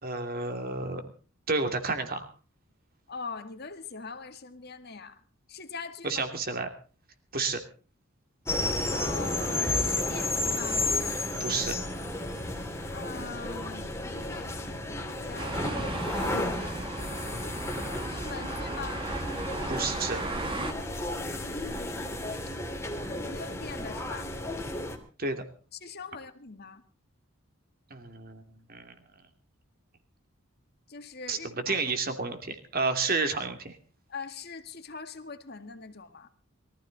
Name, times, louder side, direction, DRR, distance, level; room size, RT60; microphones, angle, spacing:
voice 1, 0.0-1.0 1.5-2.3 6.0-6.7 7.3-7.6 11.4-11.8 19.7-20.2 25.2-25.4 27.9-28.4 28.7-29.0 31.3-33.8, right 3 dB, 45° right, 7 dB, 2.7 m, -30 dB
voice 2, 3.1-5.2 5.5-6.2 8.8-10.9 12.9-16.0 16.6-19.1 21.1-22.2 23.0-24.3 25.8-26.8 30.9-31.9 34.1-36.3, left 4 dB, 50° left, 8 dB, 2.0 m, -43 dB
sound 1, 8.5-25.0, left 2 dB, 15° left, 2.7 m, -32 dB
sound 2, 15.4-20.7, right 2 dB, 25° right, 1.7 m, -36 dB
23.0 x 14.5 x 4.1 m, 0.38 s
head